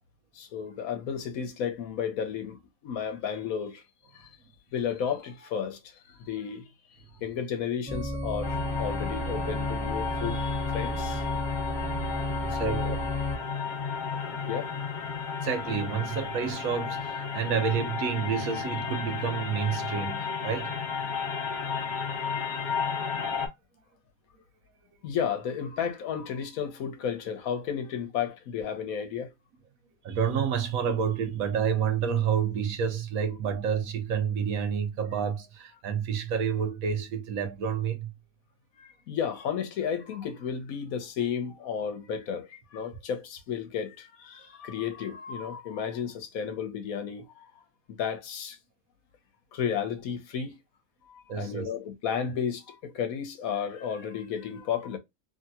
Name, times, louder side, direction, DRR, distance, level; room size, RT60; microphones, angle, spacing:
voice 1, 0.3-3.8 4.1-4.4 4.7-6.7 7.2-11.4 11.7-11.8 12.2-13.0 14.1-14.7 25.0-29.3 38.8-47.6 47.9-48.6 49.5-50.6 51.0-55.0, left 7 dB, 75° left, 1.2 m, -33 dB
sound 1, 7.9-13.4, equal, 10° right, 0.3 m, -32 dB
sound 2, 8.4-23.5, left 6 dB, 40° left, 0.9 m, -33 dB
voice 2, 12.4-12.8 15.4-20.7 30.0-38.1 51.3-51.7, right 7 dB, 75° right, 1.2 m, -29 dB
3.2 x 2.8 x 2.3 m
omnidirectional pair, 1.5 m